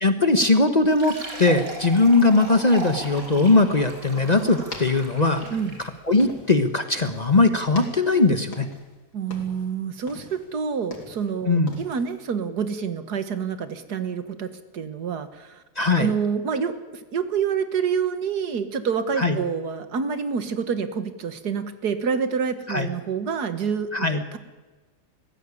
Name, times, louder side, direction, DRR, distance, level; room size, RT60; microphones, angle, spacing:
voice 1, 0.0-5.4 6.1-8.7 11.5-11.8 15.8-16.1 19.2-19.4 22.7-22.9 23.9-24.2, left 3 dB, 30° left, 9 dB, 1.1 m, -20 dB
Fill (with liquid), 0.8-6.0, right 2 dB, 60° right, 4.3 m, -37 dB
sound 1, 4.4-6.7 7.0-7.4 7.7-9.0 9.2-9.7 10.1-11.3 11.7-12.0, left 3 dB, 80° left, 4.0 m, -41 dB
voice 2, 9.1-15.6 16.0-16.8 17.1-24.4, right 6 dB, 75° right, 11 dB, 2.0 m, -27 dB
21.0 x 15.0 x 9.8 m, 1.2 s
omnidirectional pair, 1.7 m